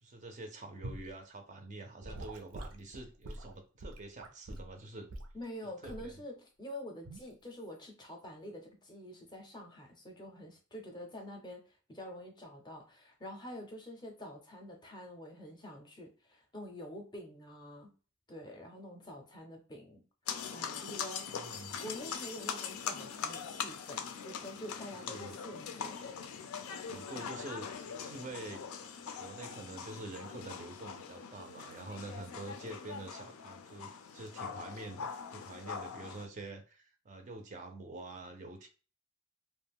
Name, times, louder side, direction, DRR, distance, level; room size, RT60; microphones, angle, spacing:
voice 1, 0.0-5.1 5.8-6.2 21.3-21.8 25.1-25.4 26.9-28.6 29.2-38.7, right 2 dB, 35° right, 5 dB, 0.4 m, -46 dB
Gurgling / Sink (filling or washing) / Liquid, 0.8-1.1 2.0-4.7 5.1-5.4 5.9-6.1 7.0-7.3, right 1 dB, 85° right, 0.5 m, -45 dB
voice 2, 5.3-17.9 18.3-20.0 20.5-21.3 21.8-26.1, left 1 dB, 20° left, 2 dB, 0.5 m, -47 dB
sound 1, 20.3-36.3, left 7 dB, 85° left, 0.4 m, -42 dB
2.4 x 2.1 x 3.4 m, 0.36 s
head